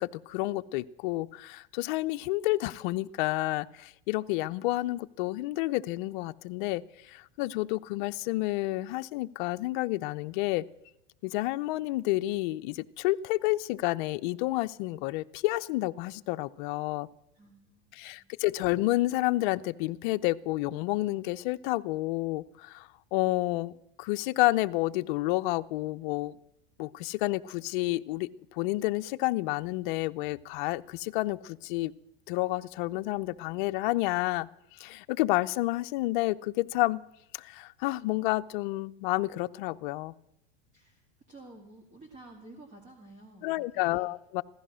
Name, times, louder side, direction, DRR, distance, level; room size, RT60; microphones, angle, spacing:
voice 1, 0.0-10.6 11.2-17.1 18.0-26.3 26.8-31.9 32.3-34.5 34.8-37.0 37.3-40.1 43.4-44.4, left 19 dB, 55° left, 11 dB, 0.6 m, -30 dB
voice 2, 17.3-18.3 40.7-44.1, right 2 dB, 25° right, 2 dB, 2.4 m, -52 dB
16.0 x 13.5 x 6.3 m, 0.82 s
supercardioid pair, 150°, 30 cm